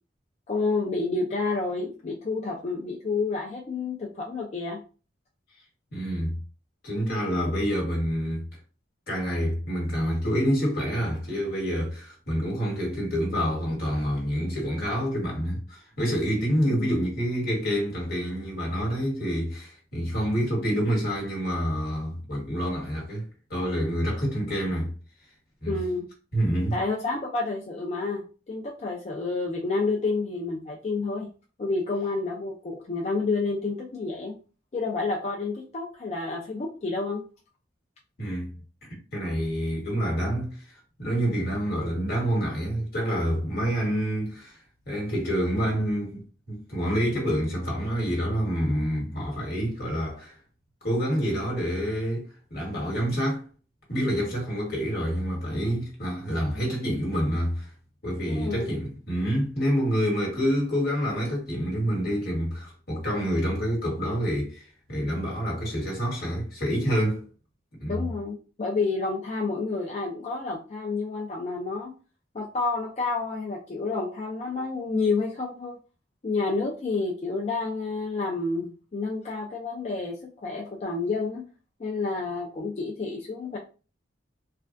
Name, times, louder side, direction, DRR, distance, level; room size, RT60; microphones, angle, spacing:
voice 1, 0.5-4.8 16.6-16.9 25.7-26.1 26.7-31.3 31.6-34.4 34.7-37.2 39.9-40.1 58.3-58.7 67.9-71.9 72.3-75.7 76.2-81.4 81.8-83.6, left 3 dB, 35° left, 0.4 m, -29 dB
voice 2, 5.9-6.3 6.8-8.4 9.1-24.9 25.6-25.7 26.3-26.8 38.2-38.5 39.1-40.6 41.0-44.6 44.9-46.2 46.5-50.4 50.8-53.4 53.9-57.7 58.0-67.2 67.8-68.1, equal, 50° left, 1.3 m, -27 dB
3.3 x 2.3 x 2.5 m
head